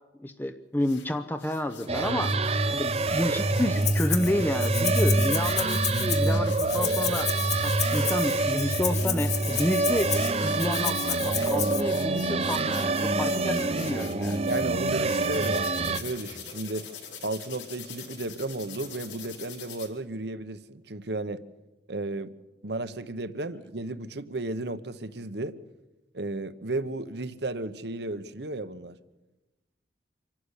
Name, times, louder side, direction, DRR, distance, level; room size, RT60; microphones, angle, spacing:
voice 1, 0.2-2.3 2.7-7.3 7.6-14.4, left 1 dB, 10° left, 7 dB, 0.7 m, -30 dB
sound 1, 0.8-1.1 1.4-14.6 15.1-19.9, left 7 dB, 85° left, 4.5 m, -44 dB
sound 2, 1.9-16.0, right 2 dB, 35° right, 0.9 m, -26 dB
Rattle (instrument), 3.8-4.3 4.6-11.8, left 9 dB, 40° left, 1.5 m, -32 dB
voice 2, 14.5-16.9 17.2-21.4 21.9-22.3 22.6-25.6 26.1-29.0, right 2 dB, 65° right, 13 dB, 1.0 m, -34 dB
26.0 x 12.0 x 9.9 m, 1.0 s
head